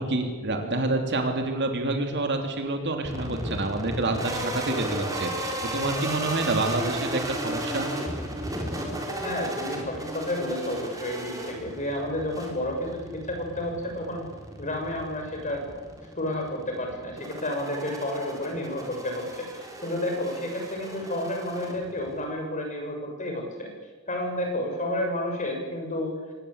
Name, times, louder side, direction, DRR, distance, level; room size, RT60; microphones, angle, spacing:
voice 1, 0.0-7.9, right 2 dB, 55° right, 4 dB, 3.3 m, -28 dB
sound 1, 3.0-22.2, right 1 dB, 15° right, 4.4 m, -35 dB
voice 2, 9.2-14.2 14.6-15.6 16.2-19.5 19.8-23.7 24.1-26.2, left 1 dB, 35° left, 2 dB, 6.7 m, -31 dB
25.0 x 20.0 x 8.3 m, 1.3 s
head